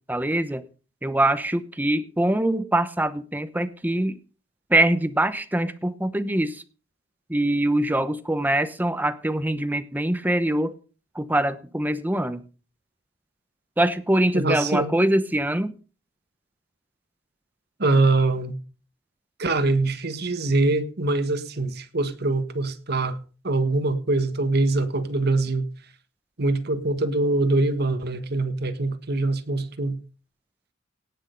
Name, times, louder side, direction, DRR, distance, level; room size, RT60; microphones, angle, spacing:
voice 1, 0.1-0.6 1.0-4.2 4.7-6.6 7.3-10.7 11.1-12.4 13.8-15.7, right 1 dB, 10° right, 12 dB, 0.9 m, -23 dB
voice 2, 14.3-14.9 17.8-18.6 19.4-23.2 23.4-25.7 26.4-30.0, right 2 dB, 55° right, 10 dB, 1.5 m, -23 dB
18.0 x 6.5 x 5.3 m, 0.36 s
head